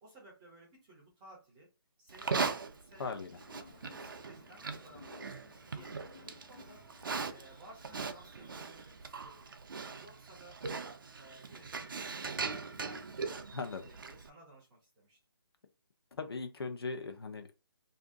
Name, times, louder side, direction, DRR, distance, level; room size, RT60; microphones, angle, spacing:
voice 1, 0.0-1.7 2.0-5.4 5.7-6.8 7.3-9.5 9.8-10.8 11.1-13.5 13.8-15.2, right 1 dB, 5° right, -4 dB, 0.5 m, -57 dB
Livestock farm animals working animals, 2.1-14.3, right 4 dB, 55° right, 0.5 m, -40 dB
sound 1, 3.3-8.5, left 5 dB, 40° left, 1.0 m, -58 dB
voice 2, 13.5-13.9 16.1-17.5, left 4 dB, 65° left, 5 dB, 0.9 m, -39 dB
2.7 x 2.6 x 3.6 m, 0.30 s
hypercardioid pair, 175°, 14 cm